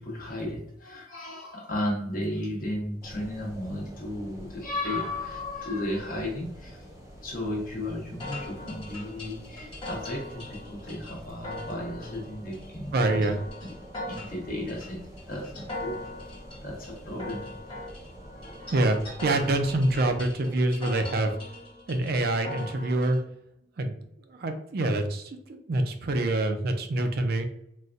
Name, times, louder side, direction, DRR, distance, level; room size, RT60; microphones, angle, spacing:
voice 1, 0.0-6.9 7.2-13.3 14.1-15.0 15.3-16.1 16.6-17.5, left 1 dB, 55° left, -1 dB, 1.0 m, -34 dB
sound 1, 3.0-20.2, equal, 15° right, 0.6 m, -47 dB
sound 2, 8.2-23.2, left 2 dB, 25° left, 1.3 m, -41 dB
voice 2, 12.9-13.4 18.7-21.3 21.9-23.3 23.8-23.9 24.3-27.5, right 2 dB, 60° right, 6 dB, 0.4 m, -26 dB
4.0 x 2.2 x 2.5 m, 0.74 s
head